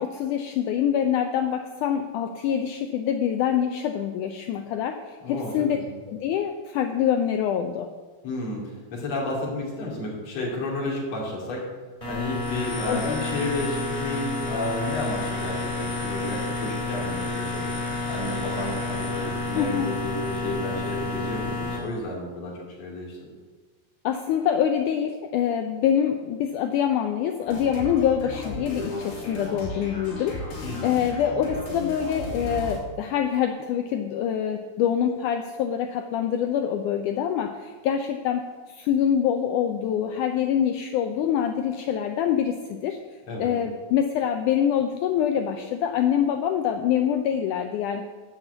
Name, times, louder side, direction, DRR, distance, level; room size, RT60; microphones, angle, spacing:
voice 1, 0.0-5.8 6.1-7.9 12.9-13.2 19.6-19.9 24.0-30.4 30.8-38.5 38.7-43.0 43.4-48.0, left 9 dB, 85° left, 6 dB, 1.8 m, -25 dB
voice 2, 5.2-6.0 8.2-11.7 12.1-17.8 18.1-23.3 30.6-30.9 43.3-43.6, left 1 dB, 45° left, -3 dB, 3.4 m, -32 dB
sound 1, 12.0-21.8, left 3 dB, 10° left, 3.8 m, -30 dB
sound 2, 27.5-32.8, left 2 dB, 65° left, 4.6 m, -35 dB
11.0 x 5.9 x 7.9 m, 1.4 s
omnidirectional pair, 4.3 m